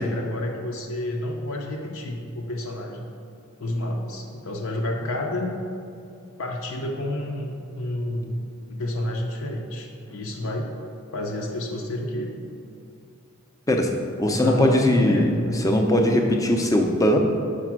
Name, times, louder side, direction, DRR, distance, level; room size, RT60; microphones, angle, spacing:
voice 1, 0.0-3.1 3.6-5.5 6.4-10.7 11.1-12.3 14.2-15.6, left 1 dB, 70° left, 1 dB, 0.7 m, -30 dB
voice 2, 14.2-15.3 15.6-17.2, left 1 dB, 15° left, 3 dB, 0.5 m, -20 dB
5.2 x 5.0 x 5.9 m, 2.5 s
head